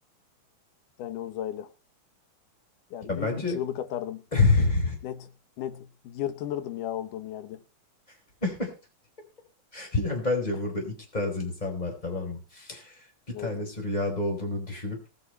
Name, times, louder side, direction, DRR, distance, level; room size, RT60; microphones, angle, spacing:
voice 1, 1.0-1.7 2.9-4.2 5.0-5.3 5.6-7.6 13.3-13.5, left 11 dB, 85° left, 2.6 m, -34 dB
voice 2, 3.1-3.6 4.3-5.0 8.4-8.7 9.7-15.0, left 3 dB, 10° left, 4.2 m, -28 dB
19.0 x 8.1 x 4.4 m
omnidirectional pair, 3.6 m